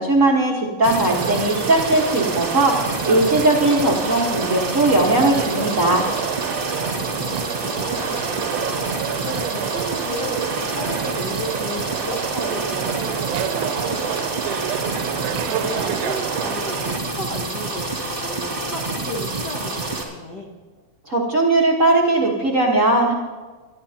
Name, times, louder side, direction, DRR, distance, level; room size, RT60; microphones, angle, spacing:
voice 1, 0.0-2.8 3.0-6.0 21.1-23.1, right 2 dB, 50° right, -3 dB, 0.9 m, -18 dB
sound 1, 0.8-20.0, right 2 dB, 20° right, 1.8 m, -28 dB
sound 2, 1.1-17.0, right 11 dB, 80° right, 2.1 m, -29 dB
voice 2, 6.9-20.5, equal, 50° left, -2 dB, 1.4 m, -34 dB
24.0 x 12.0 x 2.9 m, 1.3 s
omnidirectional pair, 3.7 m